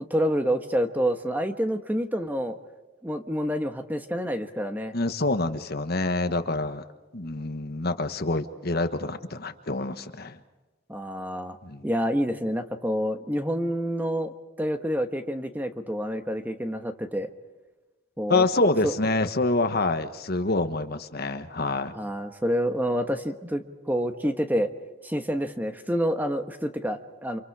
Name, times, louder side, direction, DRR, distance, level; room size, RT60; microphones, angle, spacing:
voice 1, 0.0-2.6 3.0-4.9 10.9-11.6 11.8-17.3 18.2-18.4 18.8-18.9 21.9-24.7 25.0-27.4, equal, 10° right, 6 dB, 1.3 m, -28 dB
voice 2, 4.9-6.8 7.1-10.4 11.6-11.9 18.3-21.9, left 2 dB, 50° left, 9 dB, 1.3 m, -26 dB
29.5 x 26.5 x 4.9 m, 1.2 s
head